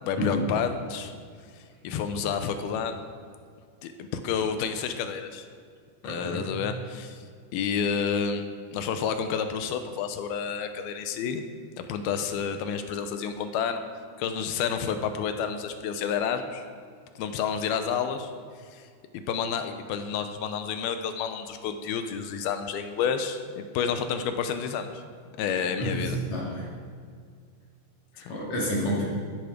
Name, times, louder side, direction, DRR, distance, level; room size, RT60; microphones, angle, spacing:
voice 1, 0.0-1.1 1.8-3.0 3.8-5.4 6.0-7.2 7.5-8.4 8.7-11.4 11.8-13.8 14.2-16.7 17.2-18.3 18.7-18.9 19.1-25.0 25.4-26.2 28.3-28.4, left 7 dB, 85° left, 8 dB, 2.7 m, -30 dB
voice 2, 6.0-6.6 25.8-26.7 28.3-29.0, equal, 50° left, -5 dB, 3.4 m, -29 dB
14.0 x 8.6 x 6.1 m, 2.1 s
omnidirectional pair, 4.4 m